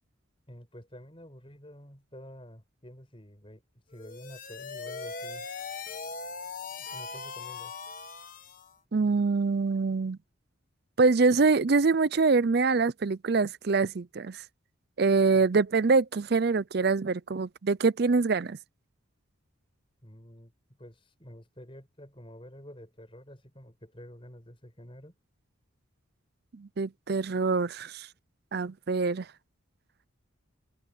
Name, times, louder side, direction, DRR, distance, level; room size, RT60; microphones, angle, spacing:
voice 1, 0.5-3.6 3.9-5.5 6.8-7.7 15.3-15.5 20.0-20.5 20.8-25.2, equal, 25° left, 6.9 m, -49 dB
sound 1, 3.9-8.7, left 4 dB, 40° left, 1.4 m, -40 dB
voice 2, 8.9-10.2 11.0-14.4 15.0-18.6 26.5-28.1 28.5-29.3, right 4 dB, 50° right, 0.5 m, -25 dB
head